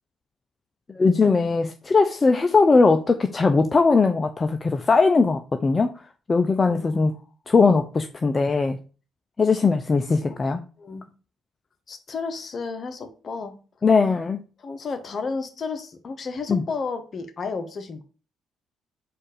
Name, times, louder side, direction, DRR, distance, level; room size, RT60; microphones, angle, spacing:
voice 1, 1.0-5.9 6.3-7.1 7.5-8.8 9.4-10.6 13.8-14.4 16.5-16.6, left 4 dB, 35° left, 0.4 m, -19 dB
voice 2, 6.7-7.1 10.3-10.4 10.8-11.0 11.9-13.5 14.6-18.0, left 4 dB, 50° left, 0.8 m, -32 dB
4.3 x 2.5 x 4.8 m
hypercardioid pair, 55°, 0 cm